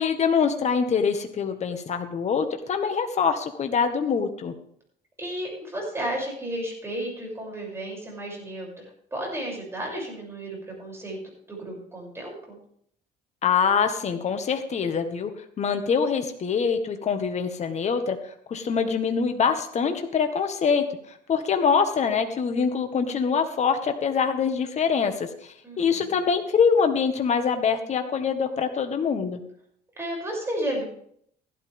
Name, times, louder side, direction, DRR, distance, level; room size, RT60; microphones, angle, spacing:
voice 1, 0.0-4.5 13.4-15.3 15.6-18.2 18.5-25.3 25.8-29.4, left 6 dB, 40° left, 7 dB, 1.7 m, -24 dB
voice 2, 5.2-8.7 9.1-11.2 11.5-12.6 25.6-26.2 30.0-30.8, right 1 dB, 15° right, -1 dB, 7.1 m, -33 dB
15.5 x 12.0 x 3.6 m, 0.65 s
cardioid pair, 110°, 17 cm